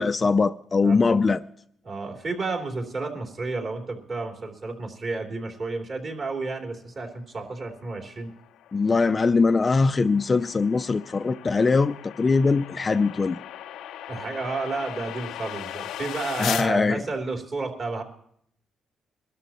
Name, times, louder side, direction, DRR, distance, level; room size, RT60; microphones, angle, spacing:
voice 1, 0.0-1.4 8.7-13.4 16.4-17.0, left 4 dB, 25° left, 0.4 m, -22 dB
voice 2, 0.8-1.1 1.8-8.3 14.1-18.0, right 3 dB, 40° right, 3.4 m, -31 dB
sound 1, 8.0-16.7, left 11 dB, 90° left, 0.5 m, -38 dB
24.0 x 13.0 x 3.0 m
cardioid pair, 120°, 0 cm